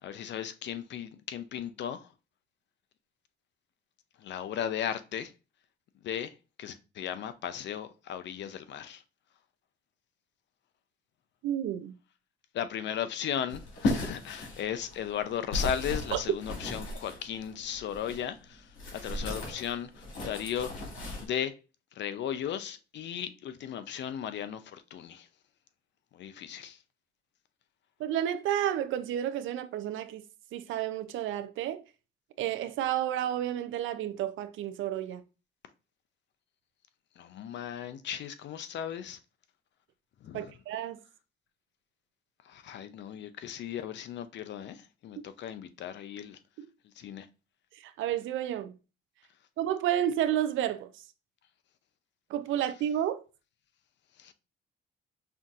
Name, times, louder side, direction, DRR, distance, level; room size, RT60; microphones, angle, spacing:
voice 1, 0.0-2.1 4.2-5.3 6.0-6.3 6.6-9.0 12.5-20.9 21.2-21.5 21.9-25.3 26.1-26.8 37.2-39.2 40.2-40.5 42.4-46.4 47.0-47.3 54.2-54.3, left 9 dB, 65° left, 0.5 m, -36 dB
voice 2, 11.4-12.0 16.1-16.2 28.0-30.2 30.5-31.8 32.4-35.2 40.3-41.0 45.2-45.3 47.7-48.7 49.6-51.0 52.3-53.2, right 11 dB, 80° right, 0.5 m, -31 dB
sound 1, 13.5-18.3 18.7-21.3, left 2 dB, 85° left, 1.9 m, -36 dB
5.6 x 2.7 x 2.4 m
cardioid pair, 90°, 20 cm